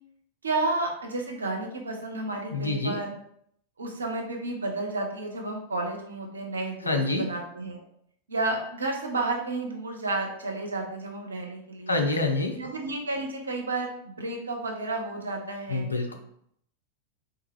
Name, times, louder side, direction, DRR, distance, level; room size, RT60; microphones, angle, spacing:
voice 1, 0.4-3.1 3.8-7.8 8.3-12.0 12.5-15.9, right 2 dB, 75° right, 1 dB, 0.7 m, -31 dB
voice 2, 2.5-3.0 6.9-7.2 11.9-12.6 15.7-16.2, left 2 dB, 80° left, 4 dB, 0.5 m, -26 dB
3.4 x 2.3 x 3.1 m, 0.69 s
figure-of-eight pair, 90°, 0 cm